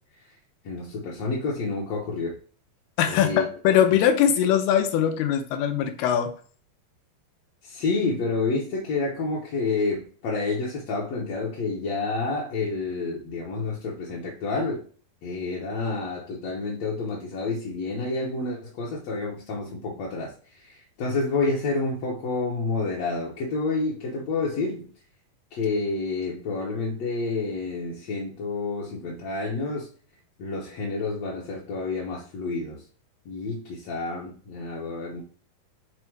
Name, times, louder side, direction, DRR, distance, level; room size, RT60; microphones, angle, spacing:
voice 1, 0.6-2.4 3.1-3.4 7.6-14.8 15.2-24.9 25.5-29.9 30.4-32.9 33.2-35.2, left 3 dB, 65° left, -4 dB, 1.7 m, -29 dB
voice 2, 3.0-6.3, left 9 dB, 85° left, 7 dB, 2.8 m, -21 dB
6.1 x 3.5 x 4.6 m, 0.42 s
omnidirectional pair, 4.4 m